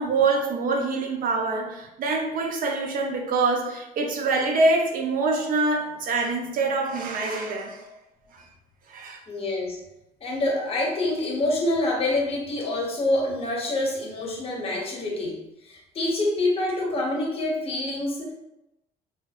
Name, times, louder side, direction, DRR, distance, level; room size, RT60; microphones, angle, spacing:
voice 1, 0.0-7.9 8.3-8.4 8.9-9.2, right 3 dB, 55° right, 2 dB, 0.5 m, -25 dB
voice 2, 9.3-9.8 10.2-15.4 15.6-18.3, left 2 dB, 35° left, -1 dB, 0.7 m, -26 dB
2.6 x 2.2 x 2.2 m, 0.88 s
cardioid pair, 110°, 17 cm